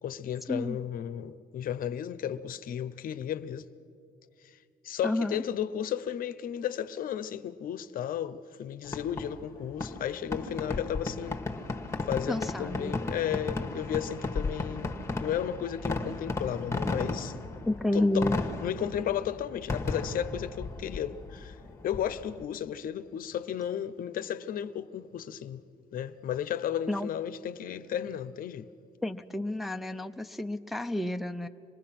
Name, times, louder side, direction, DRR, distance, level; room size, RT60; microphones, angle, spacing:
voice 1, 0.0-3.7 4.4-4.6 4.8-11.4 12.1-17.4 17.9-18.3 18.6-21.6 21.8-25.6 25.9-28.7, left 9 dB, 55° left, 0.7 m, -34 dB
voice 2, 5.0-5.4 12.3-12.9 17.7-18.4 26.9-27.1 29.0-31.5, left 1 dB, ahead, 0.5 m, -30 dB
Fireworks, 8.9-22.4, left 3 dB, 15° left, 1.4 m, -35 dB
26.0 x 19.5 x 5.9 m
cardioid pair, 110°, 17 cm